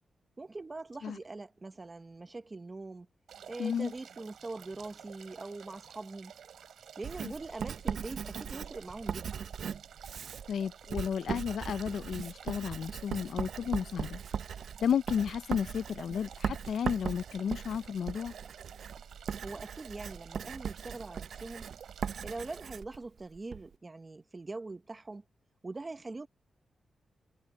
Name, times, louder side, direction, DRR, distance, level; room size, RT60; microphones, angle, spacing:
voice 1, 0.4-3.1 3.5-6.3 7.0-9.4 19.4-21.7 22.2-25.2 25.6-26.3, right 3 dB, 25° right, 0.9 m, -42 dB
sound 1, 3.3-22.6, right 8 dB, 90° right, 3.3 m, -52 dB
voice 2, 3.6-3.9 7.2-7.3 10.5-14.2 14.8-18.3, left 7 dB, 75° left, 0.4 m, -33 dB
Writing, 7.0-23.7, right 7 dB, 70° right, 0.5 m, -39 dB
wide cardioid pair, 135°, 0 cm